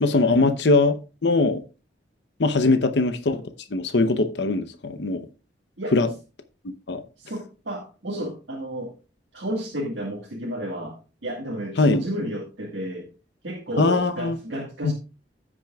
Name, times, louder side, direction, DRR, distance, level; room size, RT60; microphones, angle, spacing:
voice 1, 0.0-1.6 2.4-3.4 3.7-5.3 5.9-6.1 6.9-7.0 11.8-12.0 13.8-14.4 14.8-14.9, left 3 dB, 70° left, 0.7 m, -21 dB
voice 2, 7.2-8.9 9.3-13.1 13.4-14.9, equal, 80° right, 1.8 m, -32 dB
15.0 x 6.1 x 2.3 m
head